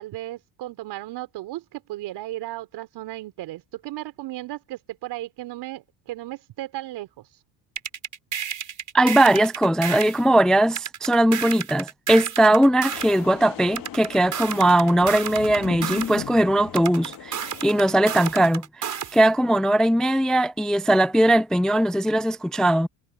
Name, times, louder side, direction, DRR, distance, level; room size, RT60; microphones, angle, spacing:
voice 1, 0.0-7.3, right 16 dB, 65° right, 4.1 m, -35 dB
sound 1, 7.8-10.2 10.8-13.2 13.8-16.2 16.7-19.2, right 8 dB, 45° right, 6.1 m, -31 dB
voice 2, 8.9-22.9, right 1 dB, ahead, 0.4 m, -20 dB
sound 2, 12.9-17.9, left 11 dB, 50° left, 2.3 m, -38 dB
hypercardioid pair, 75°, 43 cm